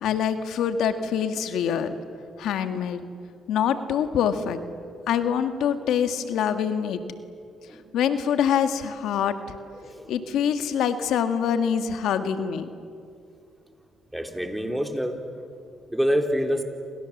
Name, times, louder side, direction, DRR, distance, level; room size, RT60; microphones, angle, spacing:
voice 1, 0.0-1.9 2.4-3.0 3.5-4.6 5.1-7.0 7.9-9.4 10.1-12.7, left 8 dB, 80° left, 8 dB, 1.6 m, -25 dB
voice 2, 9.8-10.1 14.1-15.4 15.9-16.6, equal, 5° right, 4 dB, 3.2 m, -27 dB
28.0 x 26.5 x 7.2 m, 2.4 s
cardioid pair, 90°, 0 cm